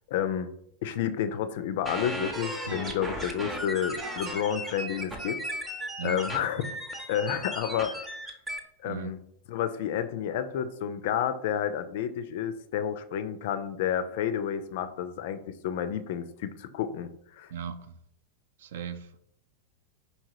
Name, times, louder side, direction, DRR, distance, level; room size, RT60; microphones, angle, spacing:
voice 1, 0.1-0.5 0.8-5.4 6.0-6.8 7.1-8.2 8.8-9.2 9.5-17.5, left 9 dB, 50° left, 0.3 m, -30 dB
sound 1, 1.9-8.6, equal, 15° right, 0.6 m, -36 dB
sound 2, 2.6-5.9, left 2 dB, 80° right, 0.8 m, -46 dB
voice 2, 17.5-18.0 18.6-19.2, right 8 dB, 55° right, 0.3 m, -37 dB
4.7 x 2.7 x 2.7 m
figure-of-eight pair, 90°, 0 cm